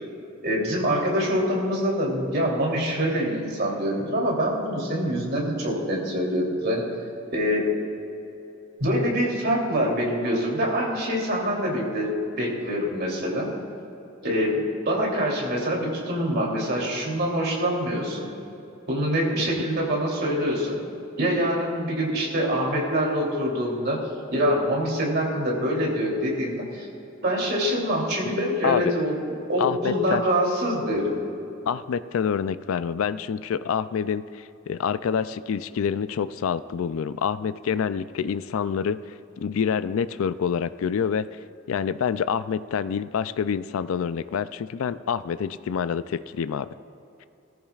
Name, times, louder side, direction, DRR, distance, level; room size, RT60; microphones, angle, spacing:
voice 1, 0.4-6.8 7.3-7.7 8.8-13.5 14.2-18.3 18.9-20.8 21.2-24.0 24.3-26.9 27.2-29.2 29.5-31.2, equal, 55° right, -2 dB, 3.1 m, -25 dB
voice 2, 29.6-30.2 31.7-39.0 39.4-41.3 41.7-46.7, left 7 dB, 85° left, 14 dB, 0.4 m, -27 dB
18.5 x 14.0 x 2.4 m, 2.9 s
head